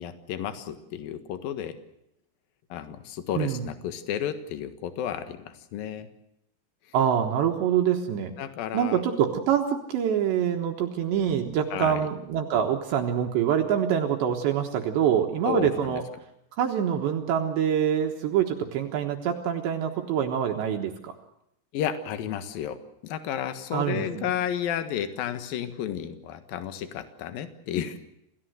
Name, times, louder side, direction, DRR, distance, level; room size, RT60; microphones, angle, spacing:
voice 1, 0.0-1.8 2.7-6.1 8.4-9.0 11.7-12.1 15.5-16.0 21.7-28.0, left 9 dB, 60° left, 10 dB, 2.6 m, -32 dB
voice 2, 3.3-3.7 6.9-8.3 8.7-16.0 16.6-21.1 23.7-24.3, right 9 dB, 70° right, 3 dB, 3.2 m, -25 dB
28.0 x 17.0 x 8.0 m, 0.80 s
omnidirectional pair, 5.9 m